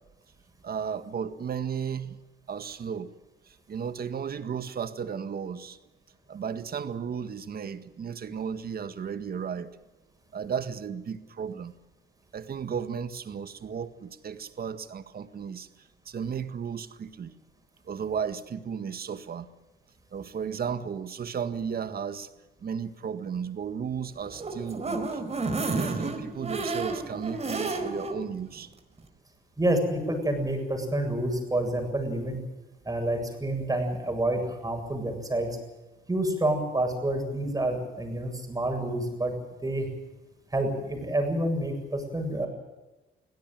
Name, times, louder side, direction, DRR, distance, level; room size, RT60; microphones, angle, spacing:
voice 1, 0.6-2.2 2.5-3.1 3.5-5.8 6.3-9.8 10.3-11.7 12.3-15.7 16.1-17.3 17.9-19.5 20.1-22.3 22.6-25.2 25.7-28.7, right 7 dB, 50° right, 10 dB, 1.8 m, -34 dB
sound 1, 24.2-28.2 28.6-28.7 29.0-29.1, right 3 dB, 35° right, 4.4 m, -31 dB
voice 2, 29.6-32.4 32.8-35.6 36.1-39.3 39.6-39.9 40.5-42.5, right 1 dB, 15° right, 5 dB, 7.7 m, -28 dB
23.5 x 17.0 x 9.3 m, 1.1 s
cardioid pair, 90°, 20 cm